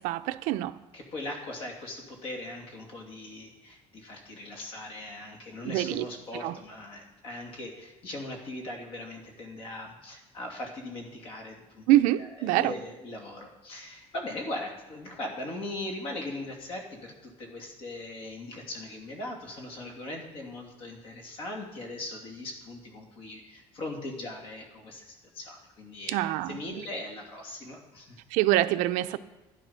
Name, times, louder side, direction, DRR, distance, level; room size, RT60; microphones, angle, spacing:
voice 1, 0.0-0.8 5.6-6.1 6.3-6.6 11.9-12.7 26.1-26.8 28.3-29.2, right 15 dB, 85° right, 11 dB, 0.6 m, -25 dB
voice 2, 0.9-28.2, left 2 dB, 45° left, 1 dB, 2.7 m, -40 dB
12.5 x 10.5 x 5.8 m, 1.1 s
cardioid pair, 175°, 13 cm